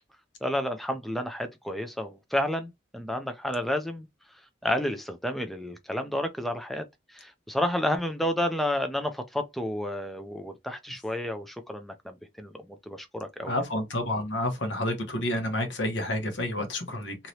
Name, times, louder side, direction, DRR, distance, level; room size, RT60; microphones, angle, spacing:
voice 1, 0.4-4.1 4.6-13.6, left 1 dB, ahead, 0.3 m, -31 dB
voice 2, 13.4-17.2, left 1 dB, 80° left, 1.1 m, -29 dB
3.1 x 2.8 x 2.7 m
head